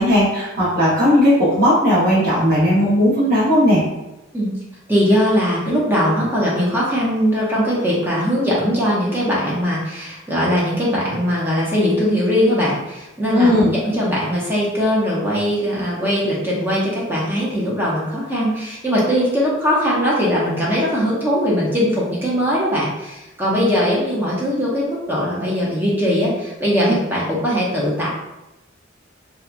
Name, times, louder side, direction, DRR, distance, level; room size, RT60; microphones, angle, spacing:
voice 1, 0.0-3.8 13.3-13.7, equal, 50° right, -9 dB, 1.0 m, -16 dB
voice 2, 4.9-28.1, equal, 10° right, -6 dB, 0.6 m, -20 dB
2.8 x 2.2 x 2.4 m, 0.97 s
head